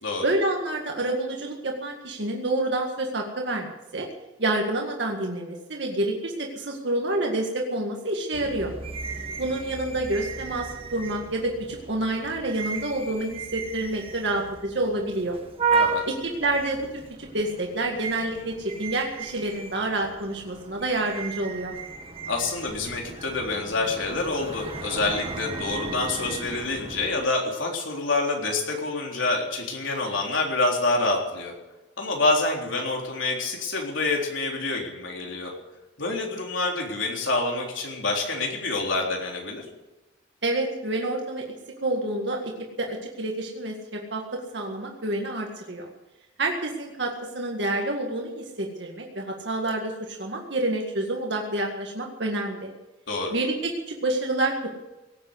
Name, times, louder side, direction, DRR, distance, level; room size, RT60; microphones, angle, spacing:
voice 1, 0.2-4.1 4.4-8.7 9.4-10.7 10.9-15.4 16.1-21.7 40.4-41.4 41.8-42.5 42.8-43.7 44.1-45.8 46.4-52.7 53.3-54.5, right 2 dB, 60° right, 0 dB, 2.0 m, -28 dB
sound 1, 8.3-27.2, right 4 dB, 30° right, 1.5 m, -34 dB
voice 2, 15.7-16.0 22.3-31.5 32.0-35.5 36.0-39.6 53.1-53.3, left 2 dB, 80° left, 0 dB, 3.7 m, -27 dB
18.0 x 8.9 x 8.2 m, 1.1 s
head